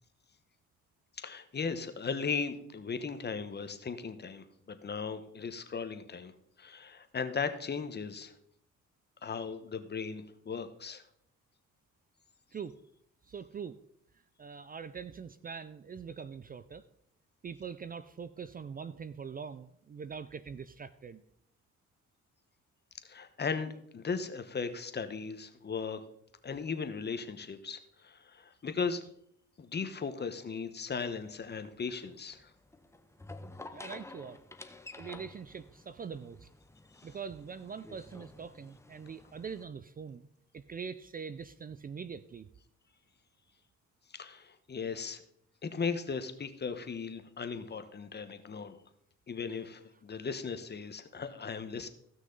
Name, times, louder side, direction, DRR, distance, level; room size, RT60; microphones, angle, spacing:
voice 1, 1.2-6.3 6.6-8.3 9.2-11.0 23.0-26.0 26.4-29.0 29.6-32.5 44.1-45.2 45.6-48.7 49.3-51.9, left 5 dB, 35° left, 9 dB, 1.1 m, -37 dB
voice 2, 13.3-13.8 14.4-16.9 17.4-21.2 33.7-34.4 35.0-36.5 37.0-40.3 40.5-42.5 49.6-50.0, right 6 dB, 30° right, 14 dB, 0.4 m, -43 dB
sound 1, 31.1-39.6, left 2 dB, 10° left, 0.8 m, -51 dB
15.5 x 6.2 x 3.9 m, 0.71 s
cardioid pair, 90°, 30 cm